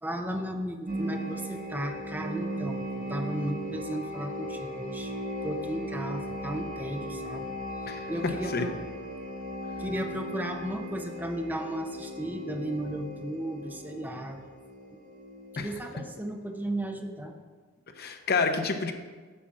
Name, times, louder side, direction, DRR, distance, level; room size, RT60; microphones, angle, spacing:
voice 1, 0.0-5.1 5.4-7.4 8.1-8.7 9.8-14.5 15.5-17.3, right 1 dB, 10° right, 3 dB, 0.8 m, -35 dB
sound 1, 0.9-16.3, equal, 40° right, 1.0 m, -37 dB
voice 2, 18.0-18.9, left 4 dB, 50° left, 5 dB, 0.9 m, -28 dB
8.7 x 5.1 x 7.4 m, 1.4 s
head